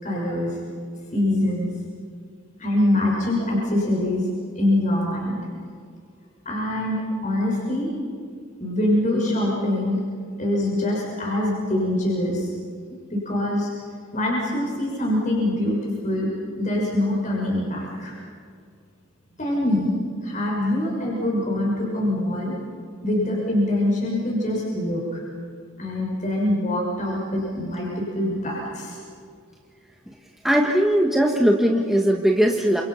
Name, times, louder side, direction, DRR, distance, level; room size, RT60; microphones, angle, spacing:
voice 1, 0.0-0.6 1.1-1.7 2.6-4.3 4.6-5.4 6.4-7.9 8.6-10.0 10.4-12.5 13.1-13.7 14.1-16.3 16.6-18.1 19.4-19.9 20.2-22.5 23.0-25.2 25.8-29.0, left 1 dB, 40° left, -3 dB, 6.2 m, -24 dB
voice 2, 30.4-32.8, equal, ahead, -1 dB, 1.4 m, -19 dB
29.0 x 27.0 x 5.8 m, 2.2 s
head